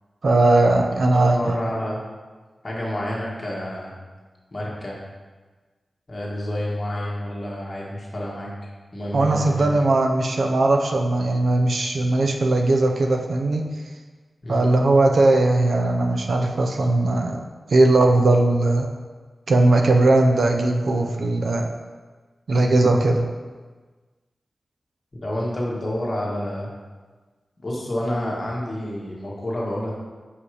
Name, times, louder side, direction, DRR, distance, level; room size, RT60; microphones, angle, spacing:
voice 1, 0.2-1.5 9.1-13.7 14.5-17.4 17.7-18.9 19.5-21.7 22.5-23.3, right 2 dB, 70° right, 3 dB, 0.6 m, -19 dB
voice 2, 1.1-2.0 2.6-3.9 4.5-5.0 6.1-8.5 8.9-9.7 14.4-14.6 25.2-26.7 27.6-29.9, left 1 dB, 35° left, -5 dB, 1.7 m, -29 dB
5.1 x 5.1 x 4.9 m, 1.3 s
wide cardioid pair, 125°, 0 cm